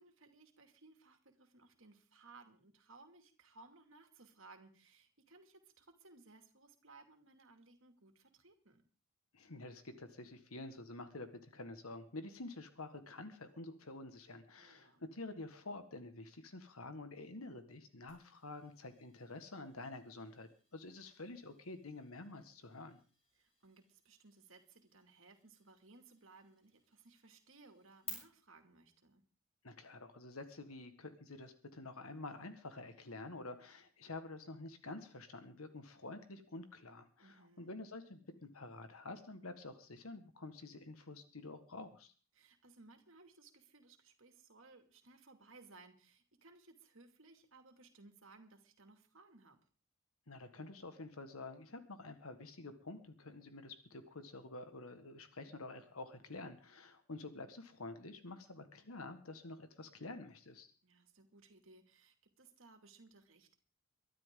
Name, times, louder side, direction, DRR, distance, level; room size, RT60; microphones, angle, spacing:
voice 1, 0.0-8.8 14.6-15.0 23.4-29.2 37.2-37.8 42.3-49.6 60.8-63.5, right 3 dB, 70° right, 6 dB, 2.5 m, -61 dB
voice 2, 9.3-23.0 29.6-42.1 50.3-60.7, left 2 dB, 90° left, 9 dB, 1.6 m, -49 dB
sound 1, 18.1-28.1, left 6 dB, 30° left, 7.4 m, -59 dB
23.0 x 12.0 x 3.8 m, 0.37 s
head